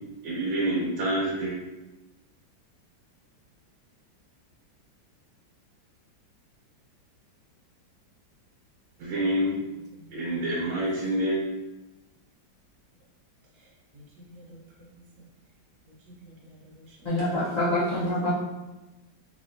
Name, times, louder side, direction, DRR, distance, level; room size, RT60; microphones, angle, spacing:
voice 1, 0.2-1.6 9.0-9.5 10.1-11.4, right 1 dB, 85° right, -5 dB, 1.8 m, -27 dB
voice 2, 9.1-9.5 9.9-10.2 13.5-14.0 14.3-15.3 15.9-18.0, equal, 60° right, -4 dB, 1.5 m, -52 dB
voice 3, 17.0-18.3, left 1 dB, 40° left, -11 dB, 0.5 m, -26 dB
4.1 x 3.1 x 2.7 m, 1.0 s
omnidirectional pair, 2.1 m